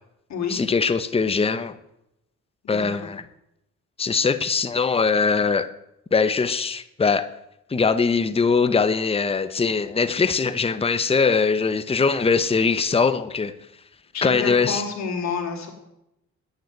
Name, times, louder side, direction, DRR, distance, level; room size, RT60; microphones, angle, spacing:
voice 1, 0.5-1.8 2.7-3.2 4.0-5.7 6.1-7.3 7.7-13.5 14.2-14.8, left 5 dB, 20° left, 0.9 m, -21 dB
voice 2, 14.1-15.7, left 5 dB, 65° left, 4.0 m, -29 dB
11.5 x 9.5 x 9.3 m
cardioid pair, 90°, 30 cm